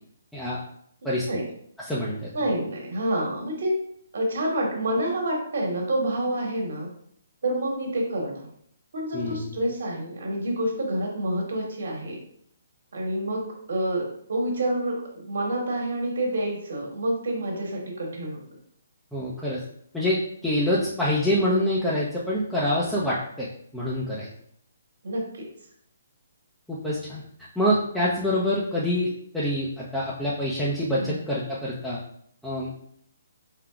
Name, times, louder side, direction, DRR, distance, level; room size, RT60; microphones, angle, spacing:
voice 1, 1.8-2.3 9.1-9.4 19.1-19.6 19.9-23.5 23.7-24.3 26.7-27.2 27.6-32.0 32.4-32.7, left 1 dB, ahead, -9 dB, 0.6 m, -26 dB
voice 2, 2.3-3.7 4.1-6.9 7.4-8.4 8.9-12.2 12.9-13.4 13.7-18.4 25.0-25.4 30.9-31.2, right 1 dB, 60° right, -1 dB, 1.4 m, -28 dB
4.6 x 3.6 x 2.4 m, 0.68 s
figure-of-eight pair, 135°, 0 cm